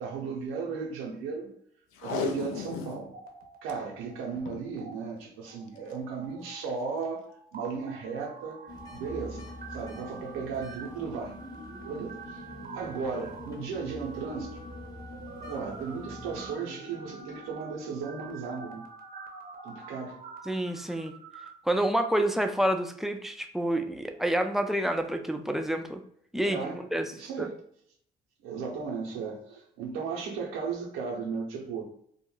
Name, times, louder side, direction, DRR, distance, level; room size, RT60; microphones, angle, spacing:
voice 1, 0.0-1.5 2.0-3.1 3.6-8.6 8.9-11.4 11.9-12.4 12.7-14.6 15.5-18.8 19.6-20.2 26.4-26.8 27.2-27.6 28.4-31.8, right 5 dB, 90° right, 0.7 m, -35 dB
Packing tape duct tape, 1.9-3.1 3.4-3.7 4.3-4.7 5.7-5.9 6.5-6.6, left 5 dB, 85° left, 0.5 m, -34 dB
sound 1, 3.0-4.4 4.6-4.9 5.5-21.5, right 4 dB, 45° right, 0.6 m, -46 dB
sound 2, 8.7-16.6, left 2 dB, 20° left, 0.8 m, -45 dB
voice 2, 20.5-21.1 21.7-26.0 26.3-26.6 26.9-27.1 27.4-27.5, right 1 dB, ahead, 0.3 m, -28 dB
2.3 x 2.1 x 3.1 m
supercardioid pair, 70°, 21 cm